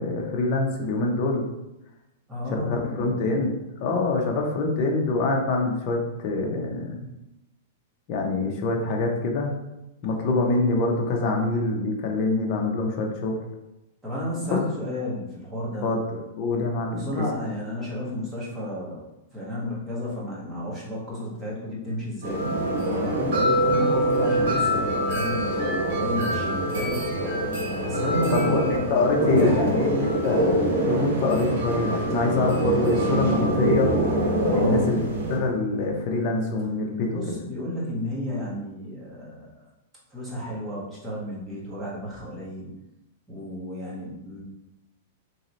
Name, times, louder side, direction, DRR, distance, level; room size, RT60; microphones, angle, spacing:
voice 1, 0.0-1.4 2.5-3.5 3.8-7.1 8.1-9.5 10.0-13.4 14.5-14.6 15.8-17.2 28.3-33.9 34.5-35.0 35.3-37.3, left 3 dB, 40° left, 0 dB, 0.7 m, -25 dB
voice 2, 2.3-3.3 14.0-15.9 16.9-19.0 19.3-22.5 23.0-27.0 27.9-30.2 34.5-34.9 37.1-39.6 40.1-42.7 43.3-44.4, left 1 dB, 10° right, -7 dB, 1.2 m, -32 dB
sound 1, 22.2-35.4, right 1 dB, 75° right, 1.3 m, -24 dB
3.1 x 2.8 x 4.0 m, 0.92 s
supercardioid pair, 155°, 0 cm